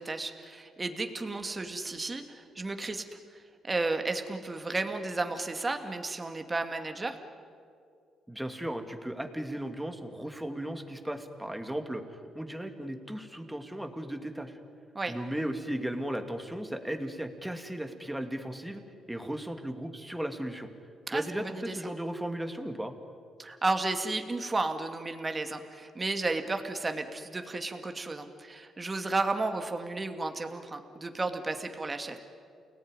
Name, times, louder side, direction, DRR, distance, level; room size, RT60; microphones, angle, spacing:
voice 1, 0.0-3.0 3.3-7.2 14.9-15.2 21.1-21.8 23.4-32.2, right 3 dB, 25° right, 6 dB, 2.2 m, -33 dB
voice 2, 8.3-14.6 15.1-18.8 19.1-20.7 21.1-22.9, right 1 dB, 5° right, 6 dB, 2.5 m, -36 dB
29.0 x 18.5 x 10.0 m, 2.3 s
cardioid pair, 90°, 0 cm